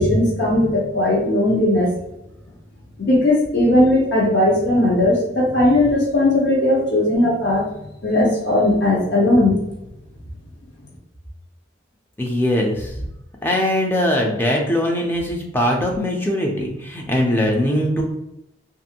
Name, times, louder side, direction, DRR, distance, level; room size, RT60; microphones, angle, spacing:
voice 1, 0.0-1.9 3.0-7.7 8.0-9.6, left 1 dB, 70° left, -4 dB, 0.7 m, -17 dB
voice 2, 12.2-13.0 13.4-18.0, left 1 dB, 10° left, 0 dB, 0.4 m, -21 dB
2.5 x 2.5 x 2.8 m, 0.88 s
head